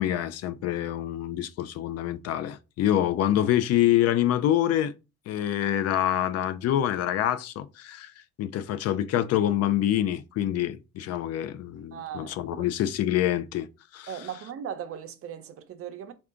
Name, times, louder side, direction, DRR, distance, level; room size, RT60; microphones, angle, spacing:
voice 1, 0.0-4.9 5.3-8.1 8.4-13.7 13.9-14.1, left 12 dB, 55° left, 0.4 m, -26 dB
voice 2, 11.9-12.7 14.1-16.1, right 9 dB, 50° right, 0.6 m, -38 dB
3.6 x 2.3 x 3.7 m
cardioid pair, 115°, 30 cm